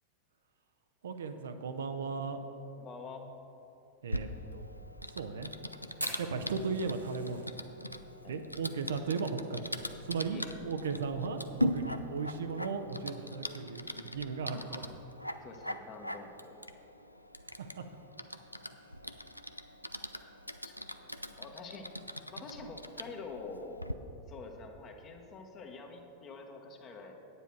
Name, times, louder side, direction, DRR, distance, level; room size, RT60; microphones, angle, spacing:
voice 1, 1.0-2.4 4.0-4.7 5.1-5.5 6.2-7.5 8.3-9.8 10.1-14.9 17.6-17.9, right 5 dB, 65° right, 8 dB, 0.6 m, -36 dB
voice 2, 2.8-3.3 8.2-8.4 10.3-10.5 14.5-14.9 15.4-16.7 20.6-21.1 21.4-21.9 22.3-23.8 24.3-27.1, left 4 dB, 30° left, 3 dB, 1.2 m, -47 dB
Typing, 4.1-23.9, left 1 dB, 90° left, 0.4 m, -41 dB
Fire, 6.0-10.5 10.7-10.8 11.1-11.2 11.6-12.0 12.5-12.6 13.7-13.8, right 1 dB, 90° right, 1.0 m, -44 dB
9.6 x 9.2 x 4.6 m, 2.9 s
figure-of-eight pair, 90°, 0 cm